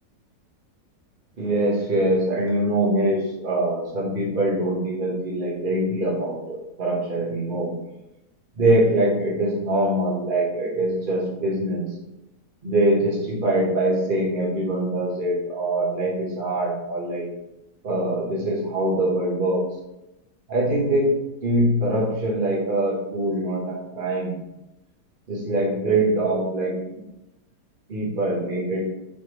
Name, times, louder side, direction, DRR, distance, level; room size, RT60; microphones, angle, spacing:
voice 1, 1.4-7.7 8.6-11.8 12.6-17.2 17.8-19.6 20.5-21.1 21.4-24.3 25.3-27.0 27.9-28.8, right 1 dB, 35° right, -4 dB, 1.1 m, -23 dB
4.3 x 3.3 x 3.0 m, 0.94 s
omnidirectional pair, 1.8 m